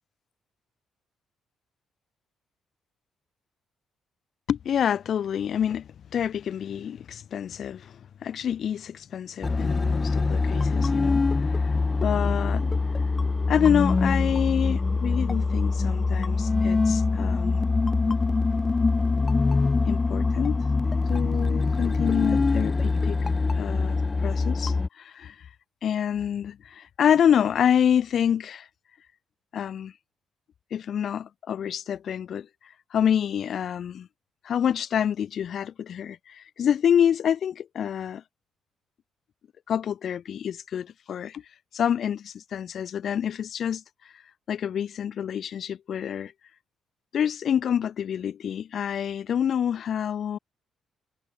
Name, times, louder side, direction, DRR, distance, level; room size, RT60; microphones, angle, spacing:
voice 1, 4.5-11.2 11.5-11.7 12.0-12.7 13.5-17.6 19.9-20.6 21.1-23.2 23.5-24.0 24.2-25.5 25.8-28.7 29.5-29.9 30.7-32.5 32.9-34.1 34.4-38.2 39.7-41.4 41.7-43.8 44.5-46.3 47.1-50.4, left 9 dB, 60° left, 5.2 m, -27 dB
sound 1, 9.4-24.9, left 3 dB, 25° left, 2.5 m, -24 dB
cardioid pair, 90°, 0 cm